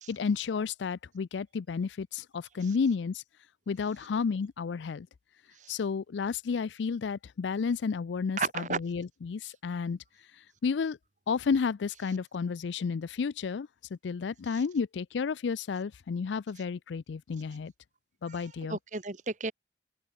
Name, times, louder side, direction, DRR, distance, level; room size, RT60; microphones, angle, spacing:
voice 1, 0.1-3.2 3.7-5.1 5.7-10.0 10.6-11.0 11.3-13.7 14.0-17.7 18.2-18.8, left 5 dB, 85° left, 0.4 m, -31 dB
voice 2, 8.4-8.8 14.5-14.6 18.3-19.5, right 4 dB, 45° right, 1.6 m, -34 dB
open air
head